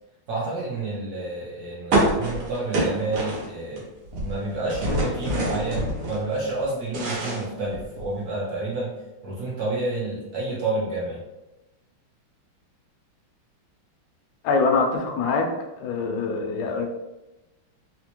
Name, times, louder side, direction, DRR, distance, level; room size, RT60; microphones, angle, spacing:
voice 1, 0.3-3.9 4.2-8.9 9.2-11.2, right 2 dB, 65° right, -5 dB, 0.9 m, -29 dB
sound 1, 1.9-3.8 4.1-6.2 6.6-8.2, right 1 dB, 90° right, 1.8 m, -26 dB
voice 2, 14.4-15.5 15.8-16.9, left 4 dB, 75° left, 2 dB, 0.9 m, -24 dB
4.2 x 2.1 x 2.9 m, 0.99 s
omnidirectional pair, 2.3 m